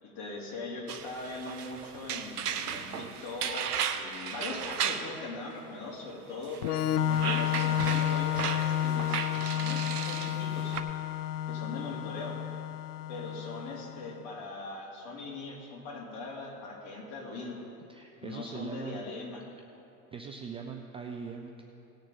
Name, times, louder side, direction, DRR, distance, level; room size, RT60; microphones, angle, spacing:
voice 1, 0.0-6.6 7.1-10.8 11.5-12.4 13.1-17.6 18.2-19.5, left 3 dB, 50° left, -1 dB, 3.0 m, -40 dB
sound 1, 0.9-5.1 6.5-10.8, right 8 dB, 80° right, 0.8 m, -35 dB
Organ, 6.6-14.2, left 11 dB, 70° left, 0.6 m, -31 dB
voice 2, 17.9-19.0 20.1-21.6, right 6 dB, 15° right, 2 dB, 0.3 m, -41 dB
18.5 x 6.7 x 4.1 m, 2.9 s
hypercardioid pair, 90°, 46 cm